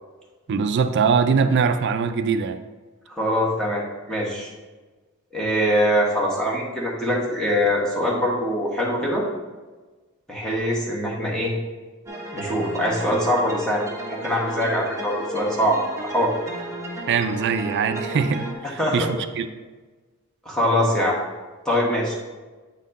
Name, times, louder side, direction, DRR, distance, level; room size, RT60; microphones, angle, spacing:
voice 1, 0.5-2.6 17.1-19.5, right 5 dB, 55° right, 9 dB, 0.4 m, -22 dB
voice 2, 3.1-4.5 5.3-9.2 10.3-11.5 12.3-13.8 14.1-16.3 18.8-19.1 20.4-21.2 21.6-22.2, equal, 5° left, -5 dB, 1.5 m, -23 dB
sound 1, 12.1-18.5, right 1 dB, 15° right, 1.1 m, -34 dB
8.2 x 4.3 x 4.0 m, 1.3 s
head